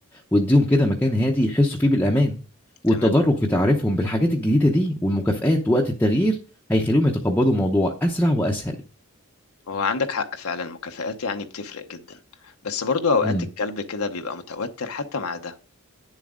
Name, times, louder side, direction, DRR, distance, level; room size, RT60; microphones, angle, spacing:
voice 1, 0.3-2.4 2.8-6.4 6.7-8.7 13.2-13.4, left 1 dB, 10° left, -1 dB, 0.7 m, -20 dB
voice 2, 9.7-15.5, left 4 dB, 80° left, 5 dB, 0.8 m, -28 dB
9.7 x 7.3 x 3.7 m, 0.38 s
head